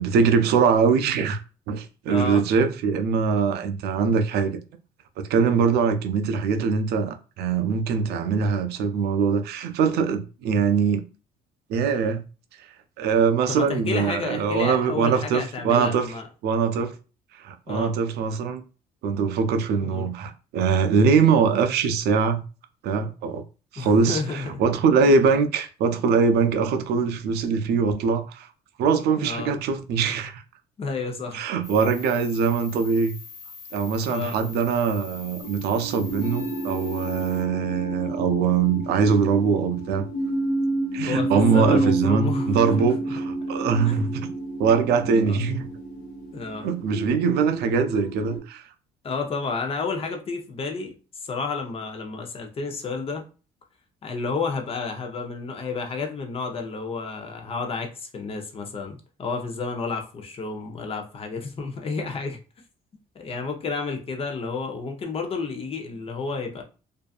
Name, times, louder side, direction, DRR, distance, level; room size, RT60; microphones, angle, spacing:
voice 1, 0.0-1.4 1.7-4.6 5.2-11.0 11.7-12.2 13.0-16.1 16.4-17.0 17.3-18.7 19.0-22.4 22.8-23.4 23.7-28.5 28.8-30.4 31.3-33.2 33.7-40.1 40.9-44.3 44.6-45.7 46.6-48.7, right 5 dB, 75° right, 0.5 m, -22 dB
voice 2, 2.1-2.4 13.5-16.2 17.7-17.9 19.8-20.1 23.8-24.6 29.2-29.6 30.8-31.4 34.0-34.4 41.0-42.9 43.9-44.1 45.0-45.4 46.3-46.7 49.0-50.9 51.2-53.2 54.0-62.4 63.1-66.6, left 4 dB, 35° left, 0.7 m, -31 dB
sound 1, 31.6-37.4, left 5 dB, 80° left, 1.3 m, -43 dB
sound 2, 35.4-48.4, right 2 dB, 60° left, 1.0 m, -30 dB
2.6 x 2.3 x 2.4 m
cardioid pair, 110°, 17 cm